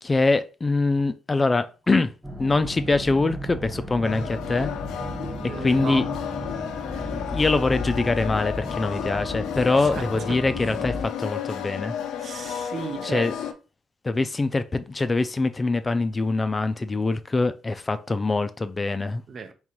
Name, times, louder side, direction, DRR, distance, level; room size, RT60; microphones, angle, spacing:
voice 1, 0.0-2.1 2.4-4.7 5.6-6.0 7.0-11.9 13.0-13.3 14.0-19.2, left 3 dB, 25° left, 0.4 m, -24 dB
sound 1, 2.2-11.0, equal, 5° right, 0.8 m, -34 dB
sound 2, 4.0-13.5, left 8 dB, 85° left, 0.5 m, -33 dB
voice 2, 5.4-6.0 9.7-10.4 12.2-13.3 19.3-19.5, right 5 dB, 50° right, 0.6 m, -35 dB
3.7 x 3.1 x 3.0 m
cardioid pair, 90°, 0 cm